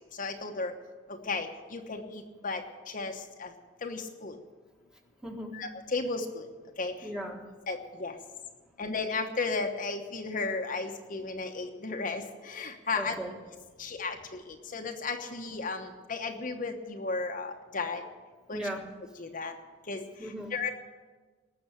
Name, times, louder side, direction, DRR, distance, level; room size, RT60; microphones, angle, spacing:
voice 1, 0.2-0.7 1.3-2.6 2.9-3.1 3.4-3.5 3.8-4.3 5.5-6.4 6.8-6.9 7.7-8.1 8.8-13.1 13.8-14.2 14.7-18.0 18.5-18.6 19.2-19.5 19.9-20.0 20.5-20.7, left 3 dB, 45° left, 4 dB, 1.1 m, -34 dB
voice 2, 5.2-5.6 7.0-7.5 12.9-13.3 13.8-13.9 18.5-18.9 20.2-20.6, equal, 5° right, 2 dB, 1.7 m, -37 dB
19.0 x 6.9 x 9.9 m, 1.4 s
head